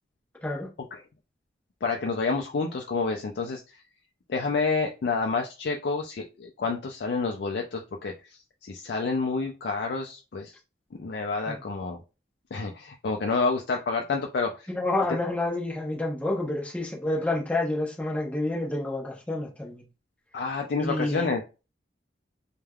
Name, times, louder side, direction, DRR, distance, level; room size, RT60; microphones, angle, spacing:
voice 1, 1.8-3.8 4.3-10.5 11.0-12.0 12.5-14.7 20.3-21.4, left 4 dB, 60° left, 0.4 m, -29 dB
voice 2, 14.7-19.8 20.8-21.3, left 2 dB, 10° left, 0.7 m, -29 dB
3.2 x 2.1 x 2.3 m
head